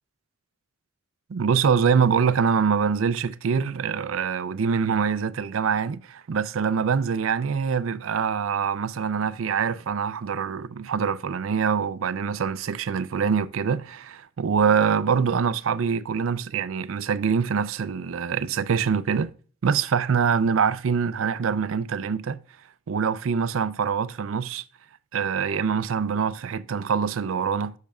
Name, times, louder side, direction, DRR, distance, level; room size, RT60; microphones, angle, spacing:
voice 1, 1.3-19.3 19.6-22.4 22.9-24.6 25.1-27.7, right 6 dB, 85° right, 0.4 m, -24 dB
10.0 x 6.5 x 2.3 m
head